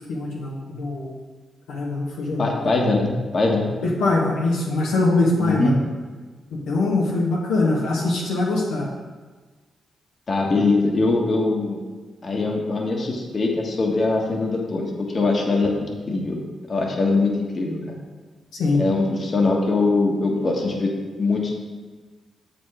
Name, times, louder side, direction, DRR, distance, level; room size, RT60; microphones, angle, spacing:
voice 1, 0.1-1.1 1.7-2.7 3.8-5.7 6.7-8.9 18.5-18.9, left 2 dB, 85° left, -4 dB, 1.2 m, -22 dB
voice 2, 2.4-3.6 5.4-5.7 10.3-11.8 12.2-16.4 16.7-18.0 18.8-20.9 21.2-21.5, left 3 dB, 50° left, 0 dB, 1.5 m, -22 dB
7.3 x 5.2 x 5.0 m, 1.3 s
supercardioid pair, 50°, 0 cm